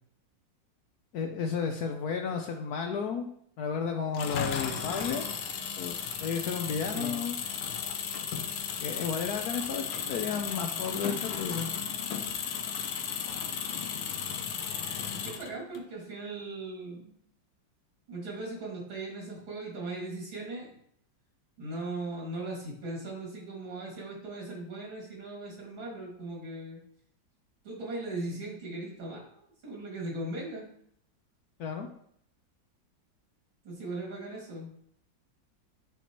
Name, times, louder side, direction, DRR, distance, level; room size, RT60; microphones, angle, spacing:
voice 1, 1.1-3.3 3.6-5.2 5.8-7.4 8.8-11.7 31.6-31.9, left 6 dB, 70° left, 4 dB, 0.9 m, -32 dB
Engine, 4.1-15.8, left 7 dB, 85° left, 1.5 m, -35 dB
voice 2, 15.2-17.1 18.1-20.8 21.6-26.8 27.6-30.7 33.6-34.7, right 2 dB, 85° right, -3 dB, 3.1 m, -38 dB
9.9 x 4.4 x 3.0 m, 0.68 s
omnidirectional pair, 2.1 m